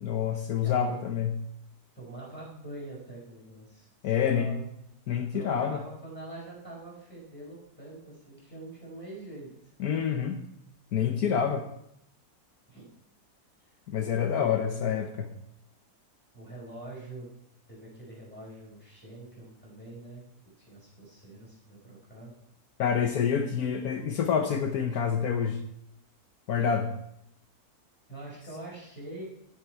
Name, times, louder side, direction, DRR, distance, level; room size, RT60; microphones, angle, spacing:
voice 1, 0.0-1.3 4.0-4.5 5.1-5.8 9.8-10.4 10.9-11.7 13.9-15.3 22.8-25.6 26.5-26.9, left 7 dB, 75° left, 5 dB, 1.3 m, -27 dB
voice 2, 0.6-1.0 1.9-4.7 5.3-9.5 12.7-12.9 14.1-15.1 16.3-17.3 17.7-20.2 20.6-22.3 26.6-26.7 28.1-29.3, right 2 dB, 5° left, -5 dB, 5.4 m, -44 dB
11.0 x 9.6 x 4.6 m, 0.74 s
omnidirectional pair, 1.6 m